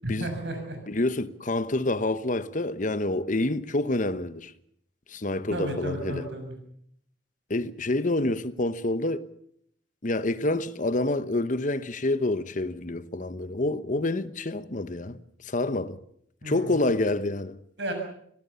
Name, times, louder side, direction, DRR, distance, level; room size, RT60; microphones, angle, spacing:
voice 1, 0.0-0.8 5.5-6.5 16.4-16.8 17.8-17.9, right 1 dB, 70° right, 6.4 m, -33 dB
voice 2, 0.9-4.5 5.1-6.3 7.5-9.2 10.0-16.0 16.4-17.6, left 2 dB, 45° left, 1.0 m, -27 dB
26.0 x 17.5 x 7.0 m
head